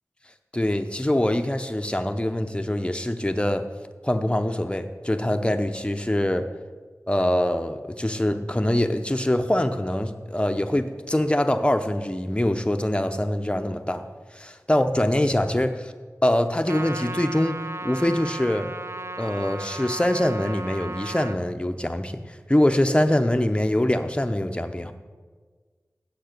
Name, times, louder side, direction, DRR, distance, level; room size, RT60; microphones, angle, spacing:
voice 1, 0.5-3.7 4.0-6.5 7.1-14.1 14.3-15.9 16.2-18.7 19.2-22.2 22.5-24.9, left 1 dB, 20° left, 7 dB, 0.7 m, -24 dB
Trumpet, 16.7-21.4, right 2 dB, 50° right, 0.4 m, -35 dB
7.9 x 6.5 x 6.6 m, 1.4 s
wide cardioid pair, 40°, 6 cm